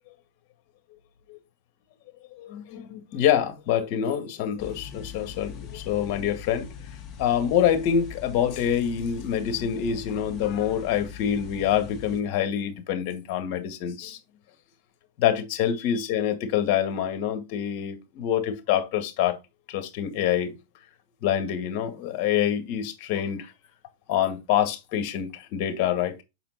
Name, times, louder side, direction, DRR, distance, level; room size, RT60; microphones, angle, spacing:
voice 1, 2.4-6.7 7.2-14.2 15.2-19.4 19.7-20.5 21.2-23.5 24.1-26.2, left 9 dB, 50° left, 1.8 m, -26 dB
sound 1, 4.6-12.2, left 8 dB, 30° left, 1.5 m, -42 dB
6.5 x 4.2 x 4.1 m
hypercardioid pair, 135°, 0 cm